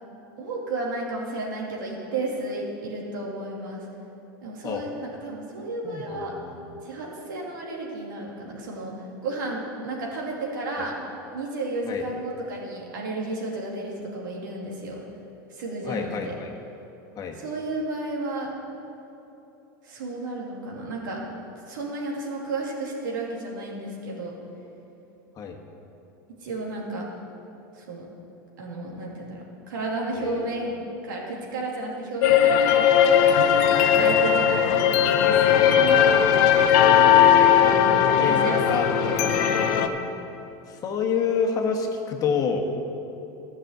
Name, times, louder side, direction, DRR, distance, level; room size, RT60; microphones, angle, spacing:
voice 1, 0.4-3.9 4.4-6.4 6.8-11.0 11.3-15.0 15.5-16.3 17.3-18.5 19.8-21.2 21.7-24.3 26.4-27.1 27.7-28.0 28.6-30.7 31.0-33.2 33.7-35.6 37.6-40.0, right 2 dB, 85° right, -2 dB, 2.6 m, -32 dB
voice 2, 5.8-6.7 11.9-12.0 15.8-16.5 17.2-17.4 25.4-25.6 30.1-30.5 38.2-38.9 40.7-42.6, left 6 dB, 35° left, 2 dB, 1.4 m, -28 dB
sound 1, 32.2-39.9, left 9 dB, 65° left, 0.8 m, -18 dB
11.5 x 6.2 x 8.0 m, 3.0 s
supercardioid pair, 110°, 10 cm